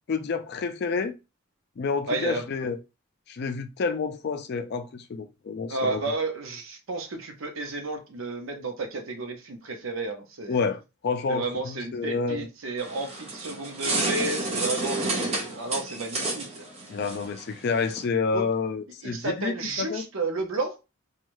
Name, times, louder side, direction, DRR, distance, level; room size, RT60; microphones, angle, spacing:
voice 1, 0.1-1.1 1.8-2.8 3.3-6.0 10.5-12.5 16.9-19.5 19.8-20.0, left 4 dB, 50° left, 0.4 m, -29 dB
voice 2, 2.1-2.5 5.7-10.6 11.3-16.6 16.9-17.0 18.3-18.4 19.0-20.8, right 3 dB, 70° right, 0.7 m, -32 dB
sound 1, 12.8-18.0, right 2 dB, 30° right, 0.7 m, -30 dB
2.6 x 2.3 x 3.0 m
head